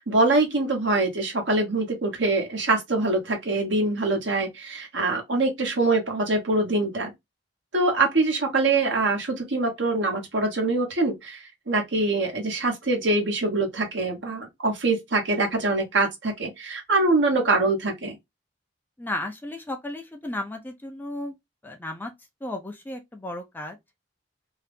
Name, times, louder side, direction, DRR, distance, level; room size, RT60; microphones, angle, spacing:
voice 1, 0.0-7.1 7.7-18.2, right 2 dB, 70° right, 1.1 m, -24 dB
voice 2, 19.0-21.4 21.6-22.1 22.4-23.8, left 1 dB, 10° left, 0.4 m, -34 dB
2.7 x 2.4 x 3.3 m
head